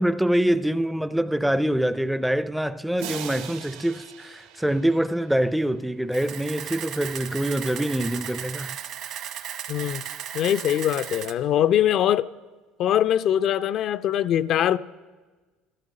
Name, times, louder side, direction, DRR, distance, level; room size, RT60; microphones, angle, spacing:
voice 1, 0.0-8.8, right 1 dB, 5° right, 0.4 m, -25 dB
sound 1, 3.0-5.8, right 9 dB, 85° right, 1.4 m, -40 dB
Camera, 6.1-11.3, right 10 dB, 60° right, 1.1 m, -36 dB
voice 2, 9.7-10.0 10.3-12.3 12.8-14.8, left 10 dB, 55° left, 0.4 m, -22 dB
14.0 x 12.5 x 6.4 m
supercardioid pair, 105°, 0 cm